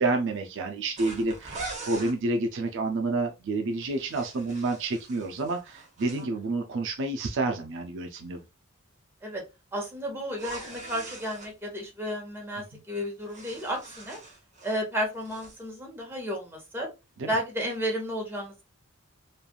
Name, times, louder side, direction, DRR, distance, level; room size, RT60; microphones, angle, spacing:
voice 1, 0.0-8.4 17.2-17.3, right 2 dB, 60° right, 0.4 m, -29 dB
sound 1, 1.0-2.2 3.8-6.2 10.3-11.5 13.0-14.8 15.1-15.6, right 3 dB, 35° right, 0.9 m, -42 dB
voice 2, 9.7-14.2 14.6-16.9 17.3-18.6, equal, 10° right, 1.0 m, -32 dB
3.2 x 2.4 x 2.2 m
head